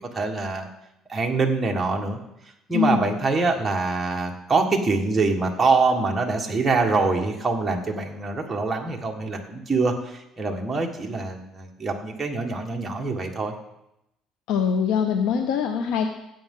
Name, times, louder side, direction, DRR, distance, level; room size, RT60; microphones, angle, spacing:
voice 1, 0.1-0.7 1.1-2.2 2.7-13.5, right 3 dB, 15° right, 1 dB, 1.6 m, -24 dB
voice 2, 2.7-3.1 14.5-16.1, left 6 dB, 80° left, 6 dB, 0.8 m, -23 dB
15.5 x 8.6 x 3.8 m, 0.85 s
cardioid pair, 120°, 0 cm